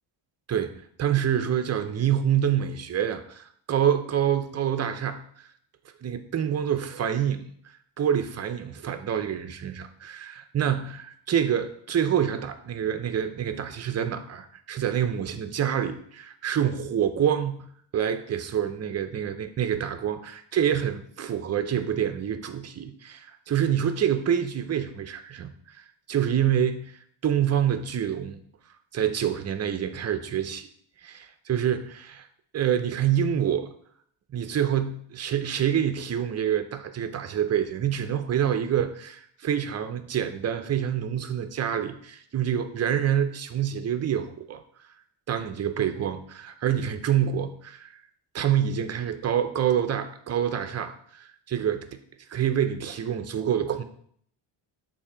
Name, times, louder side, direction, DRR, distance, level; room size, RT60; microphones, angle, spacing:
voice 1, 0.5-5.2 6.0-7.4 8.0-17.7 17.9-25.5 26.1-28.4 28.9-30.7 31.0-32.3 32.5-33.7 34.3-44.6 45.3-47.9 48.3-51.9 52.3-53.8, right 9 dB, 35° right, 9 dB, 0.5 m, -27 dB
7.0 x 2.7 x 5.0 m, 0.63 s
cardioid pair, 130°, 48 cm